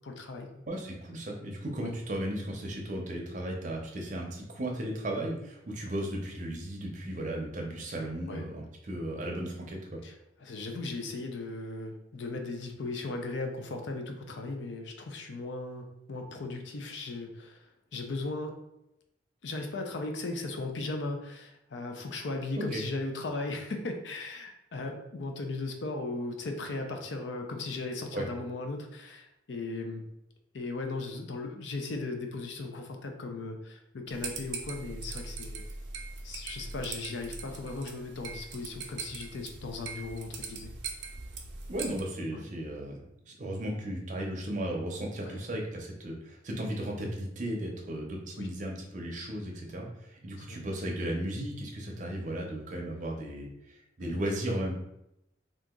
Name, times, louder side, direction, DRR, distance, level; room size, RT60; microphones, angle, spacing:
voice 1, 0.0-0.5 1.8-1.9 8.3-8.4 10.0-10.1 10.4-18.6 19.4-30.0 30.5-35.6 36.2-40.7 42.3-42.4 45.2-45.4 48.4-48.5 50.4-50.6 54.0-54.3, left 2 dB, 75° left, 4 dB, 0.5 m, -37 dB
voice 2, 0.7-10.0 22.6-22.8 28.1-28.3 41.7-54.8, right 1 dB, 40° right, 0 dB, 0.6 m, -35 dB
sound 1, 34.1-42.0, right 4 dB, 85° right, 0.6 m, -41 dB
2.8 x 2.4 x 3.6 m, 0.85 s
head